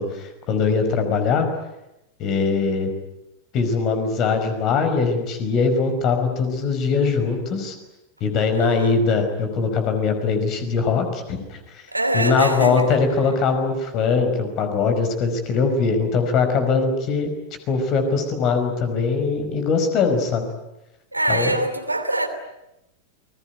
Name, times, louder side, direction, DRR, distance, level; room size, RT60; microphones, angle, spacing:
voice 1, 0.0-1.5 2.2-2.9 3.5-7.7 8.2-11.8 12.1-17.3 17.7-20.5 21.3-21.5, left 5 dB, 35° left, 7 dB, 5.2 m, -21 dB
voice 2, 8.5-9.0 11.9-12.9 21.1-22.3, right 1 dB, 85° right, 7 dB, 2.9 m, -24 dB
28.5 x 21.0 x 9.5 m, 0.91 s
figure-of-eight pair, 90°, 0 cm